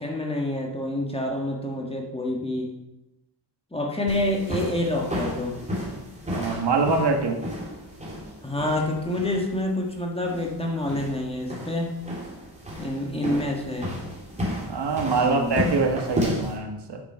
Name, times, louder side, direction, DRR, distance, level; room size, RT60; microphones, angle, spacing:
voice 1, 0.0-2.8 3.7-5.6 8.4-11.9 12.8-14.0 15.1-15.5, left 1 dB, 15° left, 0 dB, 1.5 m, -28 dB
sound 1, 4.1-16.6, equal, 15° right, 2.8 m, -33 dB
voice 2, 6.3-7.4 14.7-17.0, right 4 dB, 65° right, 3 dB, 1.4 m, -24 dB
8.8 x 7.1 x 5.5 m, 0.93 s
wide cardioid pair, 140°, 43 cm